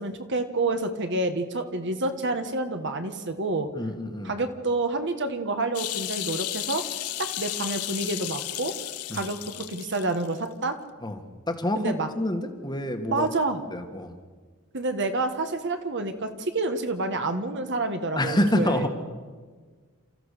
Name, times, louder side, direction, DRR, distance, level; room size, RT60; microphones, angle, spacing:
voice 1, 0.0-3.7 4.2-6.8 7.2-8.7 9.1-10.8 11.7-12.1 13.1-13.6 14.7-18.9, right 2 dB, 55° right, 7 dB, 1.6 m, -28 dB
voice 2, 3.7-4.3 9.1-9.3 11.0-13.3 13.7-14.1 18.2-18.9, left 1 dB, 20° left, 6 dB, 1.6 m, -27 dB
sound 1, 5.7-10.3 10.6-10.7, left 14 dB, 85° left, 0.9 m, -33 dB
29.5 x 14.0 x 6.7 m, 1.5 s
head